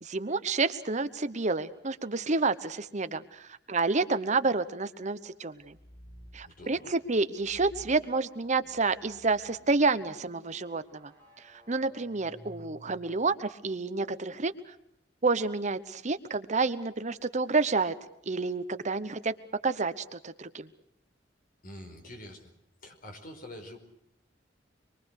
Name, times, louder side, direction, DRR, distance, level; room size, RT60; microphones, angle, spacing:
voice 1, 0.0-5.7 6.3-11.1 11.5-14.5 15.2-17.9 18.3-19.3 19.6-20.7, right 3 dB, 40° right, 12 dB, 0.9 m, -29 dB
sound 1, 5.5-6.5 7.3-13.3, equal, 10° left, 6.1 m, -54 dB
voice 2, 6.4-6.9 21.6-22.5 22.8-23.8, left 1 dB, 50° left, 5 dB, 4.9 m, -46 dB
25.5 x 23.0 x 6.5 m, 0.76 s
head